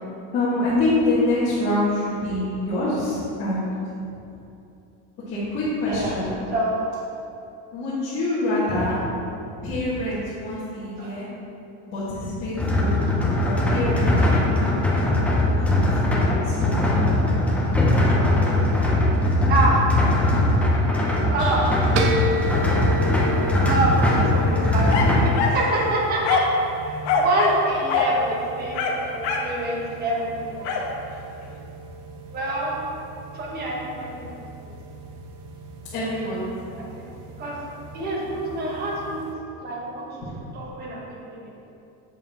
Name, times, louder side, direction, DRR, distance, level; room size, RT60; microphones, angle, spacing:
voice 1, 0.3-3.7 4.0-4.1 5.3-6.3 7.7-9.0 9.6-11.3 11.9-13.0 13.4-14.8 16.1-17.0 21.4-21.7 25.5-25.6 35.9-36.4, left 1 dB, 35° left, -11 dB, 1.5 m, -26 dB
voice 2, 5.9-6.2 6.5-6.9 8.7-9.0 11.0-11.2 18.0-18.1 19.5-19.9 21.3-21.6 23.6-30.8 32.3-32.8 33.3-34.7 36.7-37.1 37.4-37.6 37.9-39.3 39.6-40.3 40.5-41.5, right 2 dB, 25° right, -3 dB, 1.2 m, -27 dB
sound 1, 12.6-25.2, left 1 dB, 5° left, 0.5 m, -20 dB
sound 2, 22.0-39.3, right 1 dB, 70° right, 0.9 m, -34 dB
sound 3, 24.9-25.6 26.2-26.6 27.0-27.6 27.9-28.1 28.7-29.5 30.6-30.9, left 4 dB, 70° left, 1.1 m, -23 dB
7.4 x 6.7 x 3.5 m, 2.7 s
cardioid pair, 175°, 35 cm